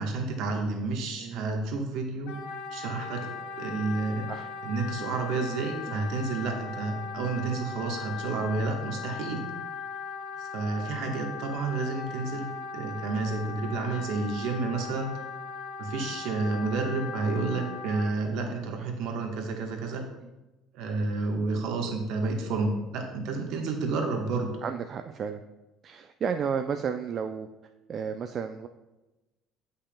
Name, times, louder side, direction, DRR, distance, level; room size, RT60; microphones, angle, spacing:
voice 1, 0.0-2.3 2.7-3.3 3.6-4.3 4.6-9.5 10.4-15.2 15.8-20.1 20.7-24.5, right 3 dB, 65° right, 2 dB, 1.1 m, -30 dB
voice 2, 1.2-1.5 4.3-4.5 5.9-6.1 24.6-25.4 25.8-27.5 27.9-28.7, right 6 dB, 45° right, 7 dB, 0.3 m, -32 dB
Wind instrument woodwind instrument, 2.3-18.1, left 5 dB, 70° left, 0.7 m, -39 dB
8.3 x 5.5 x 2.2 m, 1.0 s
hypercardioid pair, 65°, 0 cm